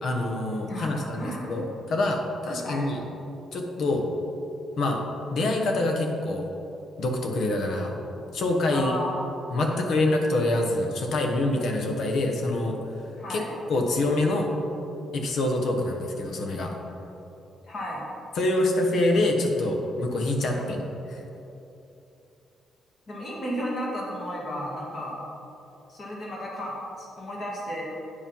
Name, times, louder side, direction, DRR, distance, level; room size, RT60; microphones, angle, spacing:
voice 1, 0.0-3.0 3.5-4.0 4.8-5.0 5.3-6.5 7.0-7.9 8.3-9.0 9.5-12.8 13.3-13.4 13.7-14.5 15.1-16.8 18.4-20.8, left 2 dB, 60° left, 2 dB, 1.0 m, -25 dB
voice 2, 0.7-1.6 2.6-2.9 8.7-9.3 9.5-10.0 13.2-13.5 17.7-18.0 23.1-25.2 25.9-27.8, equal, 35° left, -4 dB, 1.9 m, -34 dB
8.6 x 5.0 x 5.4 m, 2.9 s
cardioid pair, 160°, 0 cm